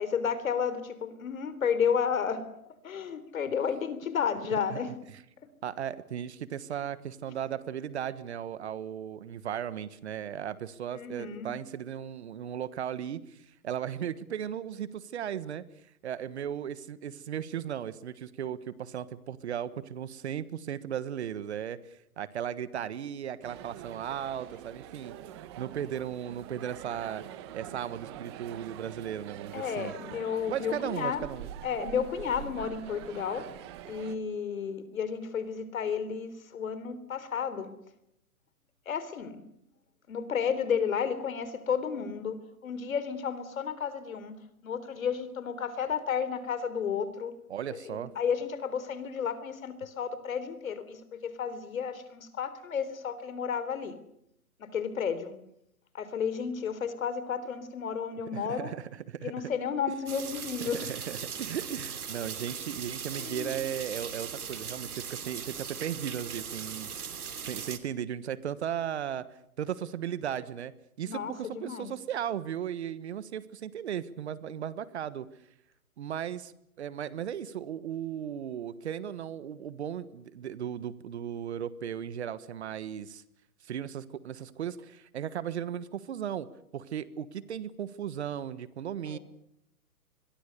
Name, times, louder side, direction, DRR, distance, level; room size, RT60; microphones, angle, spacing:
voice 1, 0.0-2.4 2.8-4.9 7.3-7.4 10.9-11.5 29.5-31.3 31.6-33.5 33.9-37.7 38.9-39.4 40.1-42.4 42.6-44.3 44.6-47.3 47.7-54.0 54.6-55.3 55.9-58.7 59.2-60.9 63.1-63.6 71.1-71.9 89.1-89.2, left 7 dB, 60° left, 13 dB, 3.7 m, -32 dB
voice 2, 5.6-15.6 16.0-25.2 25.6-27.2 27.5-29.9 30.5-31.5 47.5-48.1 58.3-59.3 60.6-69.2 69.6-70.7 71.0-75.3 76.0-76.5 76.8-83.2 83.6-86.5 86.7-89.2, right 9 dB, 45° right, 16 dB, 1.4 m, -36 dB
sound 1, 23.4-34.2, right 11 dB, 20° right, 1.0 m, -45 dB
sound 2, 60.1-67.8, right 7 dB, 75° right, 3.0 m, -39 dB
25.5 x 22.0 x 6.8 m, 0.76 s
hypercardioid pair, 155°, 45 cm